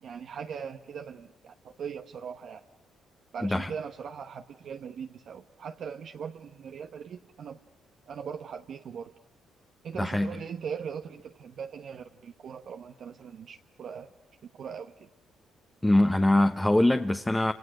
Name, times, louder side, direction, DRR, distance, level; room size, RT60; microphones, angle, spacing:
voice 1, 0.0-2.6 3.3-7.6 8.1-9.1 9.8-14.1 14.4-15.1, right 7 dB, 65° right, 1.1 m, -40 dB
voice 2, 10.0-10.3 15.8-17.5, left 1 dB, 10° left, 1.2 m, -23 dB
29.0 x 28.0 x 6.4 m
cardioid pair, 90°, 0 cm